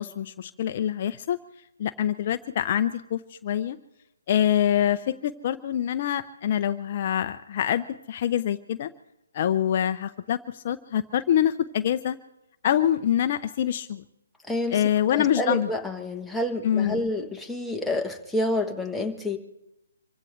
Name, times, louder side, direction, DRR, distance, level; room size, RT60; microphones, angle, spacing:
voice 1, 0.0-1.4 1.8-3.8 4.3-8.9 9.3-12.2 12.6-14.0 14.7-15.7 16.6-17.0, left 10 dB, 40° left, 10 dB, 0.6 m, -25 dB
voice 2, 14.5-19.4, left 1 dB, ahead, 2 dB, 1.2 m, -29 dB
26.5 x 16.0 x 3.2 m, 0.89 s
hypercardioid pair, 150°, 0 cm